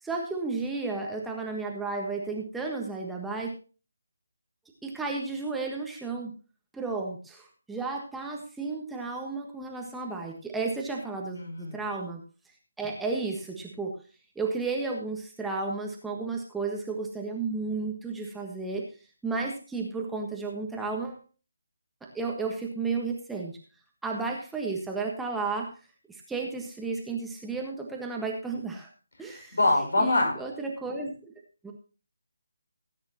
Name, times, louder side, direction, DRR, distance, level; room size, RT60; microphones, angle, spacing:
voice 1, 0.0-3.5 4.8-6.3 6.7-12.2 12.8-13.9 14.3-18.9 19.2-21.2 22.1-23.5 24.0-25.7 26.1-28.9 29.2-29.6 30.0-31.2 31.6-31.7, right 3 dB, 5° right, 0 dB, 1.5 m, -33 dB
voice 2, 11.3-11.8 29.3-30.4, left 2 dB, 70° left, 3 dB, 5.7 m, -25 dB
17.5 x 9.5 x 2.9 m, 0.36 s
figure-of-eight pair, 150°, 0 cm